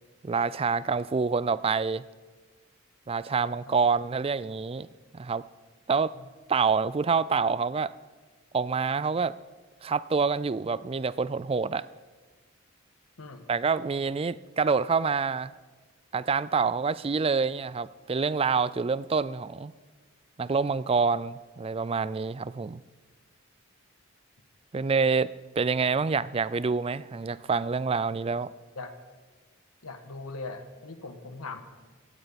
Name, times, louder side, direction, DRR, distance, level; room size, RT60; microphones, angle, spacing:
voice 1, 0.2-2.0 3.1-4.9 5.1-5.4 5.9-6.1 6.5-7.9 8.5-9.3 9.8-11.8 13.5-15.5 16.1-19.7 20.4-22.8 24.7-25.3 25.6-28.5, right 5 dB, 25° right, 18 dB, 0.3 m, -27 dB
voice 2, 29.8-31.6, left 3 dB, 85° left, 7 dB, 1.5 m, -40 dB
17.0 x 15.5 x 4.2 m, 1.4 s
head